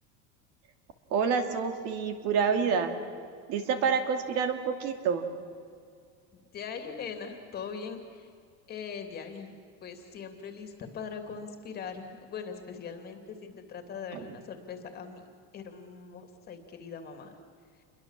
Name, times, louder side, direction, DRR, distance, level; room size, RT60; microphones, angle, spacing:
voice 1, 1.1-2.9 3.5-5.3 14.1-14.2, right 6 dB, 45° right, 7 dB, 2.4 m, -28 dB
voice 2, 6.3-8.3 8.7-9.5 9.8-15.2 15.5-17.3, left 6 dB, 30° left, 6 dB, 2.8 m, -41 dB
28.5 x 22.5 x 7.5 m, 2.2 s
cardioid pair, 165°, 34 cm